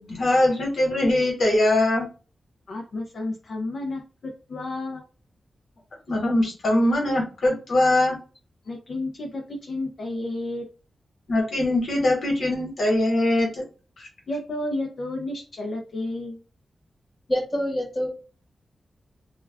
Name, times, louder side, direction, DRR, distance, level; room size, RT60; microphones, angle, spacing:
voice 1, 0.0-2.1 6.1-8.2 11.3-13.6 14.0-14.1, left 1 dB, 70° left, -1 dB, 1.1 m, -22 dB
voice 2, 2.7-5.0 8.7-10.7 14.3-16.4, left 2 dB, 50° left, 0 dB, 0.5 m, -31 dB
voice 3, 17.3-18.1, equal, 20° left, -2 dB, 1.0 m, -25 dB
2.3 x 2.2 x 3.3 m, 0.35 s
wide cardioid pair, 165°, 0 cm